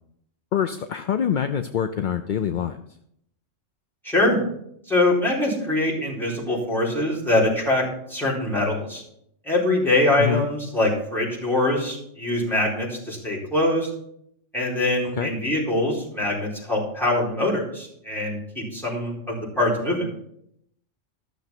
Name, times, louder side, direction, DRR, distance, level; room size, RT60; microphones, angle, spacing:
voice 1, 0.5-2.8 10.2-10.5 15.2-15.3, left 8 dB, 55° left, 8 dB, 0.6 m, -25 dB
voice 2, 4.0-4.4 4.9-9.0 9.4-13.9 14.5-20.1, left 1 dB, ahead, -6 dB, 4.2 m, -23 dB
13.5 x 6.6 x 5.9 m, 0.72 s
omnidirectional pair, 1.3 m